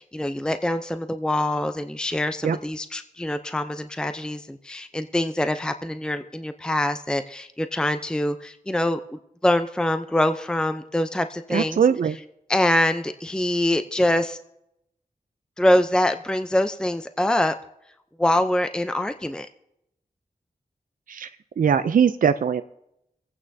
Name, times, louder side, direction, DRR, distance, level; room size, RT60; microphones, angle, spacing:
voice 1, 0.0-11.8 12.5-14.4 15.6-17.5 18.2-19.5, left 1 dB, 5° left, 9 dB, 0.6 m, -24 dB
voice 2, 11.5-12.1 21.1-21.3 21.6-22.6, right 7 dB, 60° right, 11 dB, 0.4 m, -20 dB
26.0 x 8.7 x 2.7 m, 0.82 s
cardioid pair, 45°, 16 cm